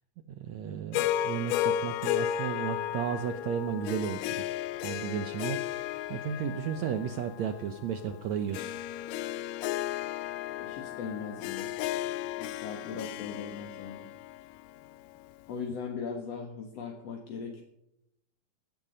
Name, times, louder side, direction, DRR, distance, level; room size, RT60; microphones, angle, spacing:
voice 1, 0.3-4.4 4.8-8.7, right 8 dB, 85° right, 9 dB, 1.6 m, -34 dB
Harp, 0.9-15.3, left 12 dB, 80° left, 2.0 m, -34 dB
voice 2, 10.6-11.7 12.4-14.1 15.5-17.6, left 6 dB, 55° left, 3 dB, 2.1 m, -39 dB
16.5 x 11.0 x 5.2 m, 0.79 s
omnidirectional pair, 4.3 m